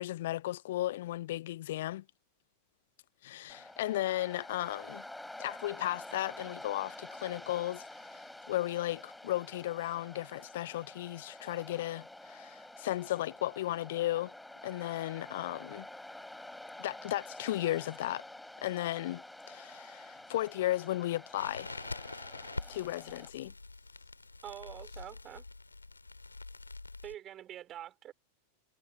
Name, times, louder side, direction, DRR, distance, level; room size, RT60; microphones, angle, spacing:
voice 1, 0.0-2.0 3.2-5.0 5.4-7.8 8.1-8.2 8.5-14.3 14.6-15.9 16.8-18.2 18.6-19.2 19.5-21.7 22.7-23.5, left 14 dB, 55° left, 0.9 m, -35 dB
Waves surf, 3.5-23.3, left 1 dB, 5° left, 4.0 m, -49 dB
Crackle, 21.4-27.2, left 3 dB, 80° left, 3.0 m, -45 dB
voice 2, 24.4-25.5 27.0-28.1, right 11 dB, 30° right, 5.1 m, -45 dB
figure-of-eight pair, 90°, 0 cm